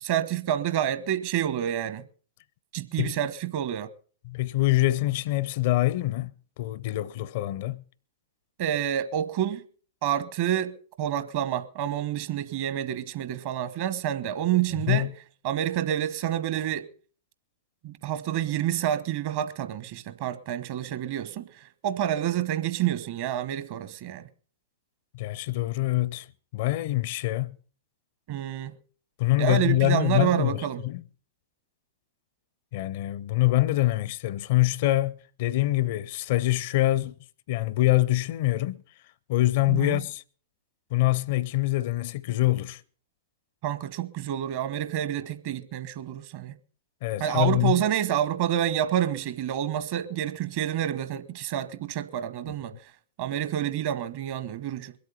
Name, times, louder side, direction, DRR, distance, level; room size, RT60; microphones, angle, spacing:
voice 1, 0.0-2.0 2.7-3.9 8.6-9.6 10.0-15.1 15.4-16.9 17.8-24.3 28.3-28.7 29.4-30.8 39.7-40.0 43.6-46.6 47.2-52.8 53.2-54.9, right 11 dB, 45° right, 1.1 m, -28 dB
voice 2, 4.3-6.3 6.6-7.8 14.9-15.1 25.1-26.3 26.5-27.6 29.2-31.0 32.7-37.1 37.5-38.8 39.3-40.2 40.9-42.8 47.0-47.8 52.5-52.6, left 17 dB, 50° left, 0.6 m, -25 dB
22.0 x 8.4 x 5.6 m
figure-of-eight pair, 105°, 0 cm